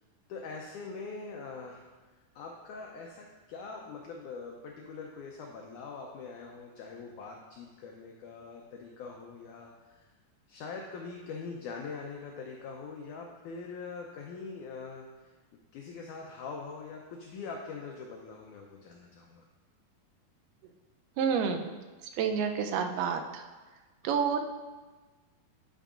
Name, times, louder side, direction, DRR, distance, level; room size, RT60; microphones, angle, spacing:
voice 1, 0.3-1.8 2.4-9.7 10.0-10.1 10.5-15.3 15.7-19.5, left 4 dB, 90° left, 0 dB, 1.7 m, -43 dB
voice 2, 21.2-21.7 22.1-23.5 24.0-24.4, right 6 dB, 85° right, 5 dB, 2.6 m, -29 dB
9.1 x 9.0 x 2.5 m, 1.3 s
omnidirectional pair, 4.3 m